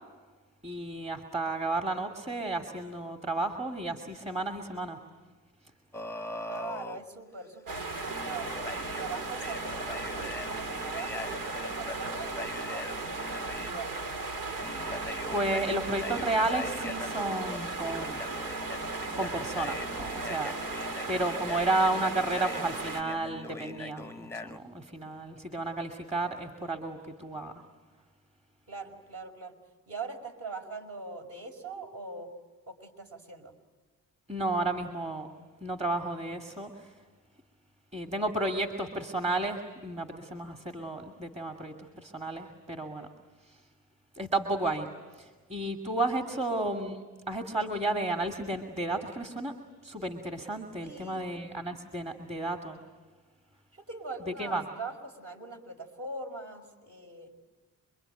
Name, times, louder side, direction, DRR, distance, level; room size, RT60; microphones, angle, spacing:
voice 1, 0.6-5.0 15.3-18.2 19.2-27.5 34.3-35.3 35.6-36.9 37.9-43.1 43.5-43.6 44.2-44.9 45.2-47.0 47.3-49.5 49.8-52.8 54.3-54.6, right 2 dB, 20° right, 4 dB, 2.5 m, -32 dB
sound 1, 5.9-7.0 8.0-13.7 14.6-24.6, left 2 dB, 10° left, 1.0 m, -41 dB
voice 2, 6.5-8.5 8.8-14.0 28.7-29.6 29.9-32.3 32.7-33.5 46.3-46.5 50.8-51.3 53.7-57.4, right 3 dB, 50° right, 3 dB, 5.3 m, -42 dB
sound 2, 7.7-23.0, right 3 dB, 80° right, 2.6 m, -36 dB
27.0 x 23.0 x 9.1 m, 1.3 s
cardioid pair, 90°, 31 cm